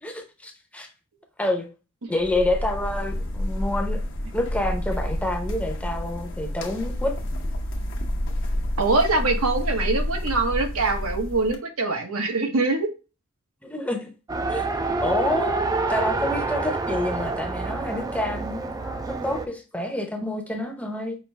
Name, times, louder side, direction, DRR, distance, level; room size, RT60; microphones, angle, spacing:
voice 1, 0.0-0.9 1.4-1.7 2.1-4.0 4.3-7.1 13.6-14.1 14.5-14.7 15.0-21.2, left 1 dB, 5° left, 0.7 m, -28 dB
sound 1, 2.2-11.6, left 1 dB, 60° left, 1.0 m, -29 dB
voice 2, 8.8-12.9, right 3 dB, 85° right, 1.1 m, -23 dB
Race car auto racing, 14.3-19.5, right 3 dB, 15° right, 0.4 m, -27 dB
5.4 x 2.6 x 3.3 m
head